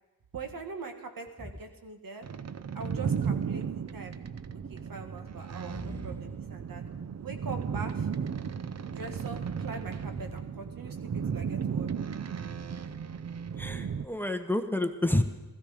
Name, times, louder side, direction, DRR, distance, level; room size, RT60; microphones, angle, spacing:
voice 1, 0.3-2.2 2.7-4.2 4.7-6.8 7.2-8.1 8.9-11.9, right 4 dB, 65° right, 5 dB, 1.7 m, -42 dB
sound 1, 2.2-14.1, right 6 dB, 45° right, 0.6 m, -35 dB
voice 2, 5.7-6.1 13.6-15.2, left 1 dB, 5° left, 8 dB, 1.0 m, -29 dB
15.5 x 14.0 x 5.1 m, 1.1 s
cardioid pair, 70°, 36 cm